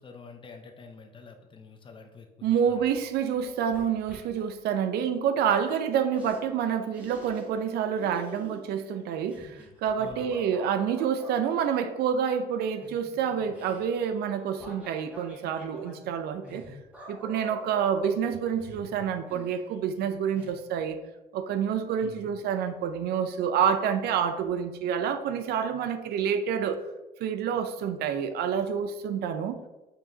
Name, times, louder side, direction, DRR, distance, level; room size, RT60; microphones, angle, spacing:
voice 1, 0.0-2.9 10.0-10.4 22.0-22.3, left 4 dB, 30° left, 5 dB, 0.6 m, -47 dB
voice 2, 2.4-16.6 17.1-21.0 21.3-26.8 27.2-29.6, right 8 dB, 70° right, 9 dB, 0.5 m, -28 dB
sound 1, 2.9-3.0 3.3-4.5 5.7-5.8 6.1-6.4 6.9-7.7 8.0-11.4 12.5-20.0 20.3-20.5, equal, 10° right, 1.4 m, -46 dB
7.1 x 2.8 x 2.6 m, 1.1 s
cardioid pair, 110°, 17 cm